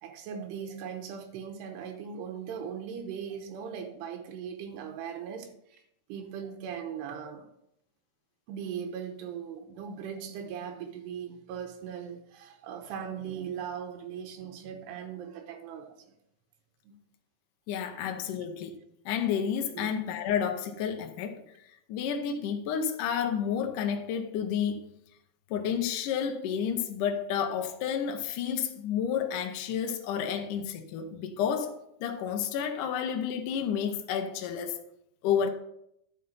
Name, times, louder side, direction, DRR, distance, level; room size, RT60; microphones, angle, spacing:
voice 1, 0.0-5.8 6.1-7.5 8.5-16.1 16.8-16.9 19.7-19.9, right 7 dB, 85° right, 3.0 m, -39 dB
voice 2, 17.7-18.8 19.1-21.4 21.9-24.9 25.5-34.8 35.2-35.5, left 8 dB, 75° left, 2.0 m, -30 dB
11.0 x 5.5 x 5.5 m
omnidirectional pair, 4.8 m